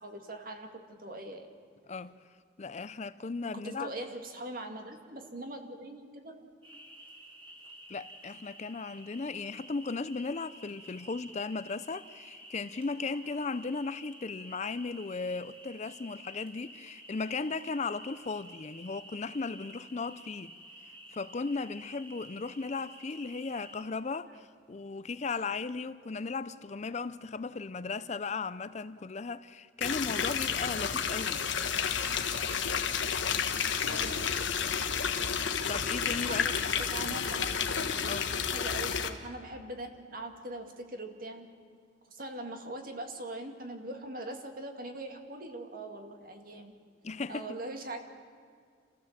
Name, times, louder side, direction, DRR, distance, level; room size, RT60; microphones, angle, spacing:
voice 1, 0.0-1.5 3.6-6.5 33.9-34.4 36.3-37.6 38.4-41.5 42.1-46.9 47.3-48.0, right 1 dB, 50° right, 2.1 m, -42 dB
voice 2, 2.6-3.9 7.9-20.5 20.8-31.4 35.7-36.5 38.0-38.3 47.0-47.5, left 4 dB, 35° left, 0.5 m, -36 dB
sound 1, 6.6-23.8, right 1 dB, 30° right, 3.3 m, -51 dB
sound 2, 29.8-39.1, left 7 dB, 80° left, 1.3 m, -31 dB
28.5 x 15.0 x 7.4 m
head